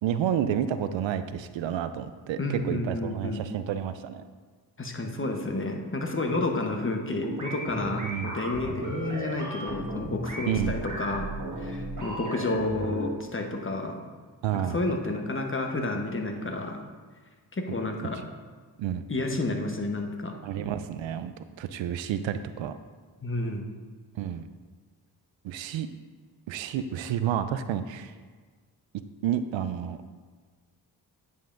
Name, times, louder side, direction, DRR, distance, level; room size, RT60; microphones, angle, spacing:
voice 1, 0.0-4.3 8.0-8.3 10.5-10.8 14.4-14.8 16.4-16.5 18.8-19.0 20.4-22.7 24.1-24.5 25.4-25.9 26.5-28.1 29.2-30.0, right 9 dB, 75° right, 11 dB, 0.5 m, -30 dB
voice 2, 2.4-3.4 4.8-11.3 11.6-14.0 14.5-16.8 17.5-18.2 19.1-20.3 23.2-23.7, left 2 dB, 25° left, 3 dB, 1.0 m, -30 dB
sound 1, 7.1-13.1, right 1 dB, 40° right, 1.6 m, -35 dB
9.5 x 5.3 x 2.6 m, 1.5 s
supercardioid pair, 50°, 46 cm